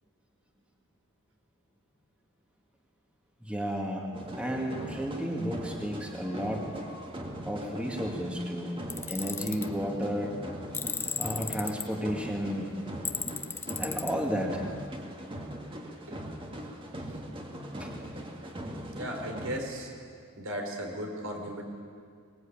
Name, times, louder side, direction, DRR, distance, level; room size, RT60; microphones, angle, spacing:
voice 1, 3.4-4.1 4.4-6.7 7.5-10.3 11.2-12.7 13.8-14.6 17.8-17.9, equal, 5° right, 0 dB, 2.1 m, -32 dB
sound 1, 4.1-19.6, equal, 25° right, 2.1 m, -40 dB
Tools, 8.9-9.7 10.7-11.8 13.1-14.1, left 5 dB, 10° left, 0.6 m, -34 dB
voice 2, 18.9-19.9 20.4-21.6, equal, 70° right, 2 dB, 4.2 m, -36 dB
23.5 x 20.5 x 8.8 m, 2.2 s
head